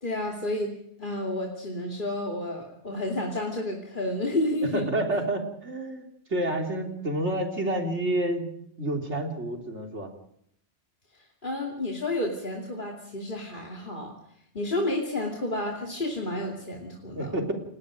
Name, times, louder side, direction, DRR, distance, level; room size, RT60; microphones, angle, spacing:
voice 1, 0.0-4.8 11.1-14.1 14.5-17.3, left 1 dB, 45° left, 0 dB, 2.9 m, -31 dB
voice 2, 4.7-8.5 8.8-10.1 17.2-17.5, right 1 dB, 75° right, 3 dB, 3.8 m, -29 dB
30.0 x 19.5 x 5.2 m, 0.69 s
omnidirectional pair, 1.2 m